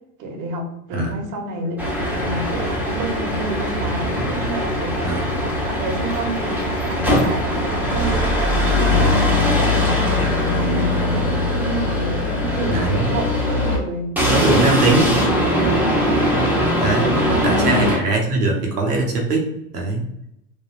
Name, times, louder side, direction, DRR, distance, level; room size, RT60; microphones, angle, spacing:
voice 1, 0.2-1.8 2.1-5.1 5.6-9.1 9.5-14.1 15.5-16.0 17.3-17.8, right 1 dB, 40° right, 2 dB, 0.9 m, -29 dB
sound 1, 1.8-13.8 14.2-18.0, left 1 dB, 5° right, 0.9 m, -20 dB
voice 2, 12.7-13.1 14.3-15.2 16.8-20.1, right 2 dB, 85° right, 1 dB, 0.8 m, -21 dB
3.3 x 2.2 x 2.4 m, 0.81 s
hypercardioid pair, 85°, 46 cm